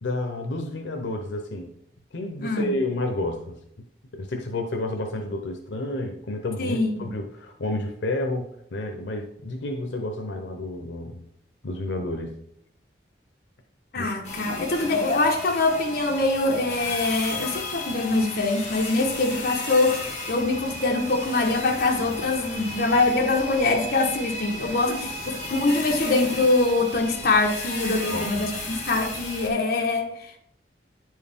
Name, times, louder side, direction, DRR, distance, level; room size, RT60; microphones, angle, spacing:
voice 1, 0.0-1.7 2.1-3.6 4.1-11.2 11.6-12.3 13.9-14.1 24.9-25.1 28.1-28.4, left 2 dB, 90° left, 3 dB, 0.7 m, -30 dB
voice 2, 2.4-2.7 6.6-7.1 13.9-24.9 25.5-30.4, left 2 dB, 60° left, 2 dB, 1.1 m, -23 dB
sound 1, 14.2-29.5, left 2 dB, 40° left, 1.7 m, -34 dB
9.5 x 4.6 x 3.5 m, 0.70 s
head